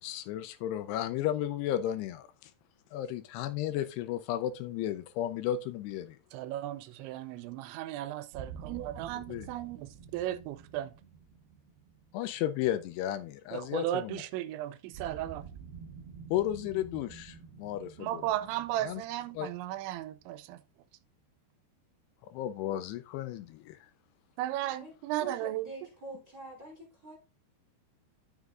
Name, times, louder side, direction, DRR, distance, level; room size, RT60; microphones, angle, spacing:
voice 1, 0.0-2.5 2.9-6.2 9.3-9.5 12.1-14.2 16.3-18.2 18.8-19.0 19.4-19.5 22.3-23.8, left 12 dB, 80° left, 2.4 m, -34 dB
voice 2, 6.3-10.9 13.5-15.4 18.0-20.6 24.4-25.7, right 13 dB, 90° right, 3.0 m, -35 dB
sound 1, 8.3-13.3 14.9-20.6, right 6 dB, 70° right, 2.6 m, -49 dB
voice 3, 24.6-27.1, right 1 dB, 25° right, 2.7 m, -46 dB
13.0 x 6.5 x 2.4 m
omnidirectional pair, 5.2 m